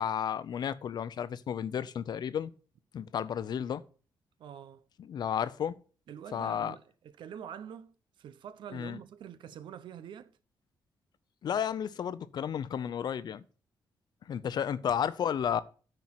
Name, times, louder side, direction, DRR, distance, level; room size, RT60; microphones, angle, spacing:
voice 1, 0.0-2.5 2.9-3.8 5.0-5.8 6.3-6.8 8.7-9.0 11.4-13.4 14.3-15.6, left 8 dB, 60° left, 0.6 m, -32 dB
voice 2, 4.4-4.8 6.1-6.8 7.2-10.4, right 9 dB, 80° right, 0.8 m, -45 dB
9.5 x 4.6 x 7.5 m
cardioid pair, 125°, 8 cm